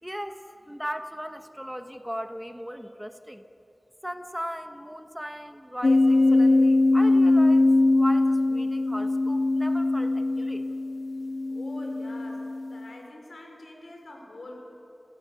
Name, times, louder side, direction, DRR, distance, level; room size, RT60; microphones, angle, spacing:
voice 1, 0.0-3.4 4.0-10.6, equal, 5° right, 7 dB, 1.3 m, -37 dB
sound 1, 5.8-12.9, left 2 dB, 65° left, 0.5 m, -22 dB
voice 2, 11.5-14.6, left 1 dB, 85° left, 1 dB, 5.1 m, -45 dB
29.5 x 17.0 x 6.7 m, 2.8 s
wide cardioid pair, 50°, 0 cm